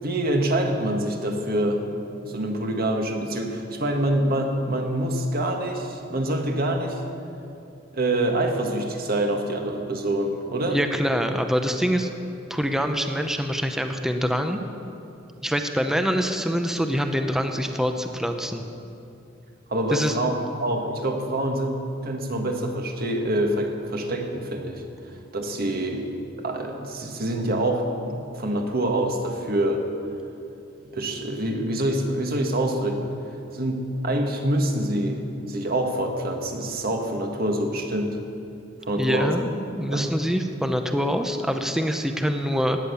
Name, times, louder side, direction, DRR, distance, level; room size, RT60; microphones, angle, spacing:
voice 1, 0.0-1.9 2.2-7.0 7.9-10.8 19.7-24.8 25.3-26.0 26.4-29.9 30.9-33.1 33.5-38.2 38.8-39.4 39.9-40.1, right 1 dB, 50° right, 3 dB, 1.7 m, -26 dB
voice 2, 10.7-12.1 12.5-14.6 15.4-18.6 19.9-20.1 39.0-42.8, equal, ahead, 6 dB, 0.8 m, -25 dB
17.0 x 9.8 x 7.0 m, 2.7 s
head